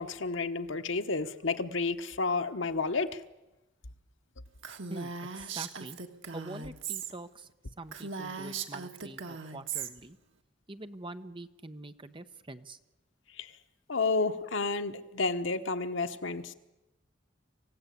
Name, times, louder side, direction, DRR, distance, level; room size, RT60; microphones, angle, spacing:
voice 1, 0.0-3.2 13.3-13.6 13.9-16.5, left 3 dB, 85° left, 9 dB, 1.2 m, -31 dB
Female speech woman speaking, 4.6-7.1 7.4-7.5 7.9-9.9, right 6 dB, 80° right, 1.8 m, -38 dB
voice 2, 4.9-6.0 6.3-7.5 7.8-10.2 10.7-12.8, right 2 dB, 25° right, 9 dB, 1.0 m, -45 dB
26.5 x 16.5 x 8.5 m, 1.0 s
head